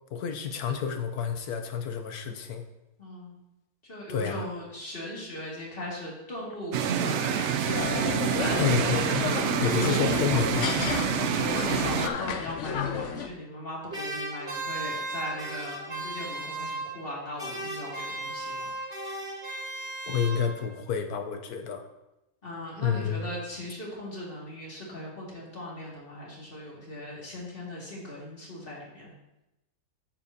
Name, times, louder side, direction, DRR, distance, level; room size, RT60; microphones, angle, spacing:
voice 1, 0.1-2.6 4.1-4.5 8.5-9.0 9.6-10.7 20.1-21.8 22.8-23.3, left 7 dB, 80° left, 6 dB, 1.4 m, -29 dB
voice 2, 3.0-3.3 3.9-8.6 9.7-10.1 11.0-18.7 22.4-29.1, left 1 dB, 35° left, -5 dB, 2.5 m, -38 dB
sound 1, 6.7-12.1, right 8 dB, 65° right, 0.7 m, -27 dB
sound 2, 7.7-13.3, left 7 dB, 65° left, 0.8 m, -32 dB
sound 3, 13.9-17.1 17.4-20.8, right 2 dB, 40° right, 1.7 m, -36 dB
9.4 x 7.3 x 2.8 m, 0.93 s
omnidirectional pair, 1.6 m